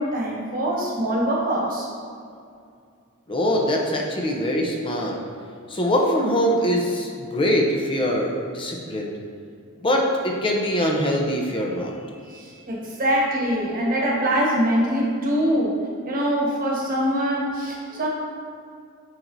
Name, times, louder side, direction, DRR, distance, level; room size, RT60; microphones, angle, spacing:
voice 1, 0.0-1.9 12.3-15.8 16.1-18.1, equal, 40° right, -3 dB, 1.3 m, -23 dB
voice 2, 3.3-5.2 5.7-9.1 9.8-11.9 12.3-12.4, equal, 25° left, 0 dB, 0.7 m, -23 dB
8.0 x 4.5 x 2.7 m, 2.3 s
head